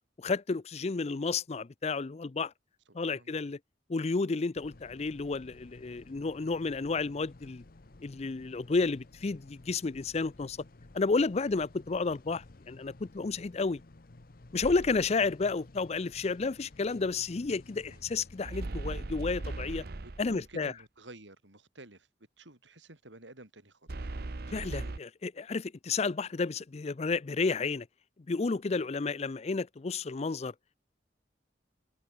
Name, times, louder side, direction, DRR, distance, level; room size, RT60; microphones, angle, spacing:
voice 1, 0.2-2.5 2.9-3.6 3.9-7.6 8.0-10.6 10.9-13.8 14.5-19.8 20.2-20.7 24.5-27.9 28.3-30.5, left 4 dB, 35° left, 0.5 m, -31 dB
voice 2, 2.9-3.5 11.4-11.6 17.9-18.1 20.0-22.1 22.4-24.1 28.7-28.9, right 2 dB, 85° right, 5.1 m, -52 dB
sound 1, 4.6-18.4, left 2 dB, 50° left, 1.0 m, -54 dB
sound 2, 14.6-15.2 18.4-20.5 23.9-25.0, right 2 dB, 55° right, 0.9 m, -38 dB
open air
head